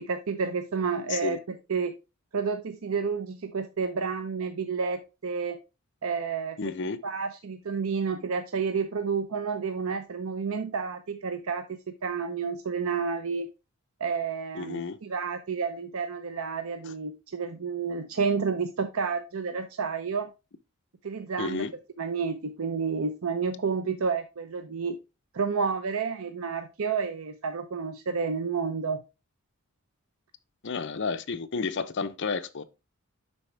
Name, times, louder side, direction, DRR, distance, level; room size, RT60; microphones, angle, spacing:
voice 1, 0.0-1.9 2.3-5.6 6.0-6.7 7.0-13.5 14.0-20.3 21.0-21.6 22.0-25.0 25.3-29.0, right 5 dB, 70° right, 0.6 m, -30 dB
voice 2, 6.6-7.0 14.5-15.0 16.9-17.0 21.4-21.7 30.6-32.6, left 4 dB, 55° left, 0.6 m, -31 dB
10.5 x 4.2 x 3.2 m
head